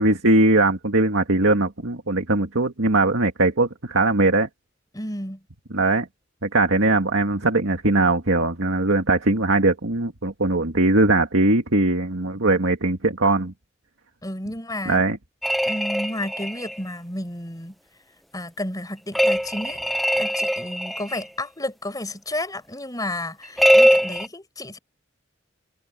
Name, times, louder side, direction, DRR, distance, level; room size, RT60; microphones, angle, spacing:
voice 1, 0.0-4.5 5.7-6.1 6.4-13.5 14.9-15.2, right 2 dB, 90° right, 2.0 m, -20 dB
voice 2, 4.9-5.4 14.2-15.0 15.6-17.7 18.3-19.8 20.1-24.8, left 1 dB, 20° left, 4.9 m, -31 dB
sound 1, 15.4-16.8 19.2-21.3 23.6-24.3, equal, ahead, 0.7 m, -21 dB
head